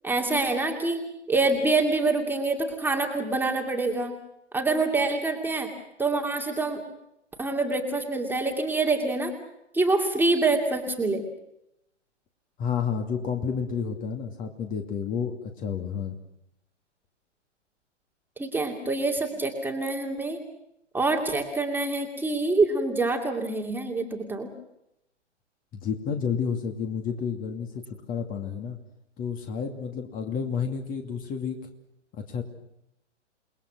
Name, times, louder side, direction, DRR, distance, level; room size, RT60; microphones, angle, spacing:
voice 1, 0.0-1.0 1.3-4.1 4.5-5.7 6.0-6.8 7.4-9.3 9.7-11.2 18.4-20.4 20.9-24.5, right 3 dB, 5° right, 2 dB, 2.6 m, -26 dB
voice 2, 12.6-16.2 25.7-27.8 28.1-28.8 29.2-31.6 32.1-32.4, left 6 dB, 25° left, 5 dB, 2.6 m, -30 dB
29.0 x 21.0 x 6.3 m, 0.83 s
figure-of-eight pair, 120°, 36 cm